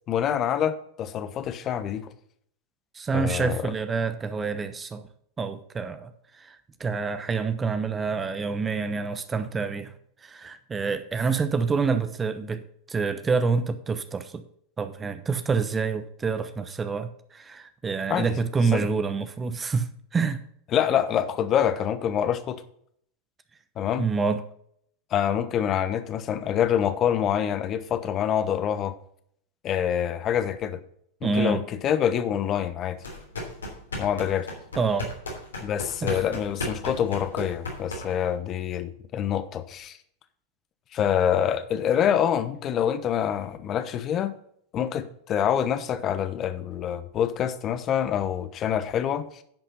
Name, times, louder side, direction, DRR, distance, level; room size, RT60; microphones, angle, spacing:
voice 1, 0.1-2.1 3.1-3.7 18.1-18.3 18.7-18.9 20.7-22.6 23.8-24.0 25.1-28.9 29.6-30.8 31.2-33.0 34.0-34.5 35.6-40.0 40.9-44.3 44.7-49.4, left 9 dB, 40° left, 1.1 m, -26 dB
voice 2, 2.9-5.1 5.4-9.9 10.2-14.4 14.8-20.4 24.0-24.4 31.2-31.6 34.8-35.1 36.0-36.2, right 5 dB, 20° right, 0.9 m, -27 dB
sound 1, 33.0-38.3, left 1 dB, 85° left, 3.2 m, -35 dB
10.5 x 5.6 x 5.4 m
hypercardioid pair, 90°, 0 cm